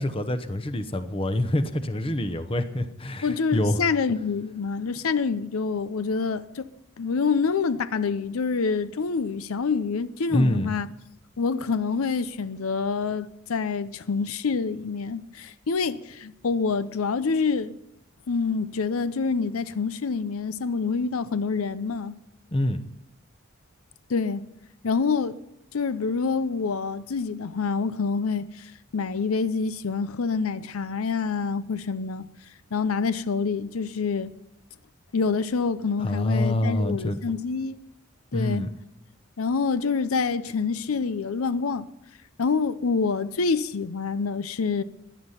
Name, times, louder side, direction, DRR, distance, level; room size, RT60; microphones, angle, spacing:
voice 1, 0.0-3.8 10.3-10.8 22.5-22.8 36.0-37.2 38.3-38.7, left 1 dB, 25° left, 0.8 m, -26 dB
voice 2, 3.2-6.7 7.0-10.9 11.4-17.7 18.3-22.2 24.1-24.5 24.8-25.4 25.7-32.3 32.7-34.3 35.1-37.8 38.3-38.7 39.4-41.9 42.4-44.8, left 5 dB, 90° left, 0.6 m, -26 dB
16.5 x 11.0 x 5.6 m
head